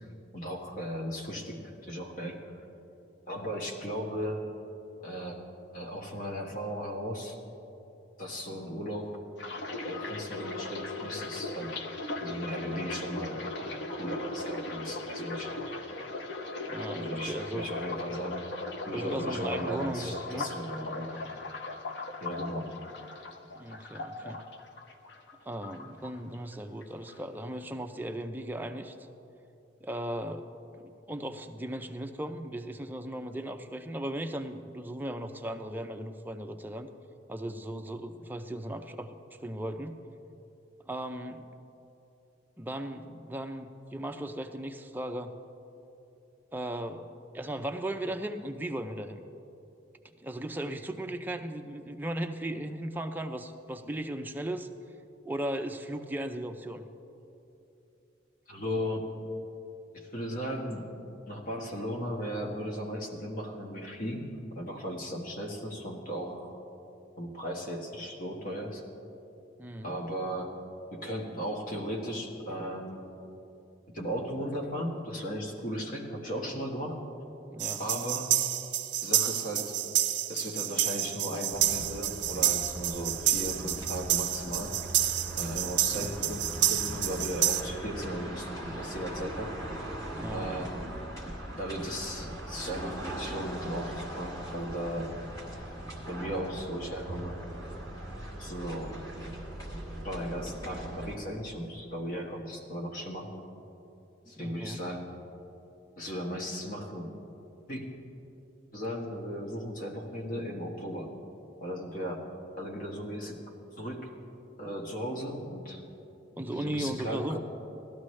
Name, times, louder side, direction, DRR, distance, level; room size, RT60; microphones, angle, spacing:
voice 1, 0.3-2.4 3.3-4.4 5.0-5.4 5.7-7.4 8.2-9.1 9.7-11.7 12.2-15.8 16.9-18.4 18.9-21.2 22.2-22.7 58.5-59.1 59.9-60.9 61.3-66.6 67.2-68.8 69.8-70.5 70.9-73.1 73.9-77.1 77.8-78.3 79.0-79.7 80.3-84.7 85.3-89.5 90.3-90.8 91.6-95.1 96.1-97.4 98.4-99.0 100.0-103.3 104.3-105.1 106.0-107.1 107.7-107.8 108.7-111.2 111.6-113.3 113.8-114.1 114.6-115.8 116.5-117.4, equal, 50° left, 0 dB, 1.4 m, -36 dB
sound 1, 9.4-25.3 25.6-26.5 26.8-27.2, left 2 dB, 65° left, 0.8 m, -38 dB
voice 2, 16.7-17.7 18.9-20.5 23.5-24.4 25.4-29.0 29.8-30.5 30.8-36.9 37.3-39.2 39.4-40.0 40.9-41.5 42.6-45.3 46.5-49.2 50.0-54.7 55.3-56.9 69.6-70.0 77.5-77.9 85.9-86.3 90.2-90.7 104.4-104.8 116.4-117.4, right 1 dB, 10° right, 5 dB, 0.5 m, -37 dB
sound 2, 77.6-87.6, right 12 dB, 65° right, 0.7 m, -29 dB
sound 3, 81.5-101.2, right 1 dB, 20° left, 1.8 m, -40 dB
17.5 x 12.5 x 3.2 m, 2.9 s
head